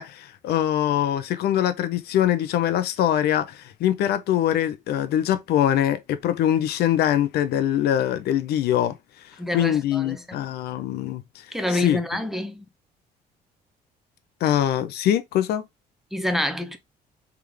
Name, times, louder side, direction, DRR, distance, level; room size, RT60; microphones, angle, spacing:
voice 1, 0.0-9.0 9.5-11.4 11.7-12.0 14.4-15.7, left 11 dB, 70° left, 0.7 m, -23 dB
voice 2, 9.4-10.4 11.5-12.7 16.1-16.8, left 1 dB, ahead, 0.7 m, -27 dB
3.6 x 3.4 x 3.3 m
cardioid pair, 110°, 17 cm